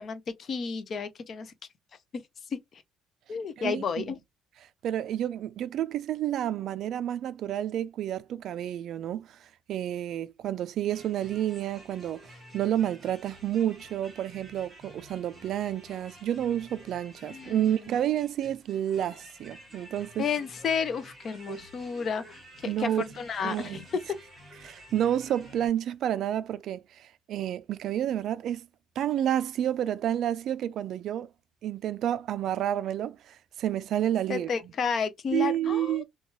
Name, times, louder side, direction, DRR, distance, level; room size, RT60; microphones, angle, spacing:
voice 1, 0.0-1.5 2.5-2.8 3.3-4.2 17.3-17.7 20.2-24.0 34.3-36.0, left 6 dB, 40° left, 0.5 m, -32 dB
voice 2, 4.8-20.3 21.5-21.6 22.6-23.0 23.4-23.8 24.6-28.7 29.0-31.3 31.6-34.5 35.3-36.0, right 11 dB, 55° right, 0.3 m, -30 dB
sound 1, 10.9-25.7, equal, 10° right, 1.3 m, -51 dB
3.0 x 2.2 x 2.8 m
cardioid pair, 150°, 0 cm